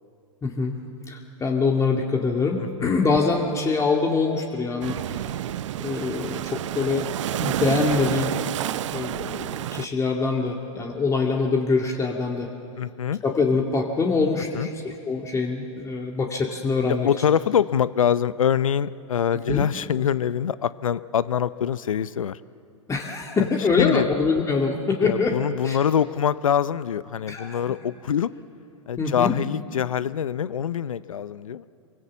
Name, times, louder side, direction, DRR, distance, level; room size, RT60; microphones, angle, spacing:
voice 1, 0.4-0.7 1.1-5.3 5.8-7.1 7.4-8.4 8.9-12.5 13.2-17.1 19.5-19.6 22.9-25.3 25.6-25.8 27.3-27.6 29.0-29.3, left 4 dB, 15° left, 1 dB, 2.2 m, -24 dB
voice 2, 2.6-2.9 12.8-13.2 14.5-14.7 16.9-22.4 23.4-24.1 25.0-28.3 28.9-31.6, left 8 dB, 75° left, 17 dB, 0.7 m, -24 dB
sound 1, 4.8-9.9, right 12 dB, 65° right, 0.6 m, -29 dB
27.5 x 23.5 x 7.4 m, 2.6 s
hypercardioid pair, 105°, 17 cm